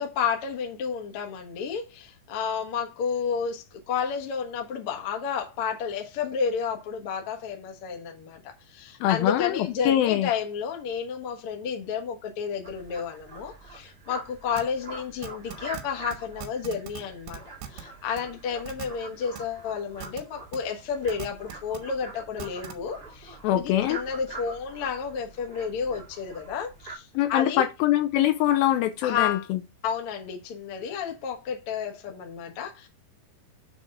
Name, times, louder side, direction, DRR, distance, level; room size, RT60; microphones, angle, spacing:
voice 1, 0.0-17.4 17.7-27.6 29.0-29.4 29.8-32.9, left 6 dB, 60° left, 1.5 m, -31 dB
voice 2, 9.0-10.3 23.4-24.0 27.2-29.6, left 12 dB, 80° left, 2.3 m, -23 dB
sound 1, 12.6-27.0, right 3 dB, 20° right, 1.7 m, -44 dB
sound 2, 14.6-14.7 15.2-15.8 16.1-16.2 16.4-17.0 17.3-17.8 18.2-18.3 18.7-18.9 19.4-19.5 20.0-20.2 20.5-20.6 21.1-21.8 22.4-22.7, right 9 dB, 85° right, 2.9 m, -38 dB
7.1 x 3.6 x 5.4 m
omnidirectional pair, 4.4 m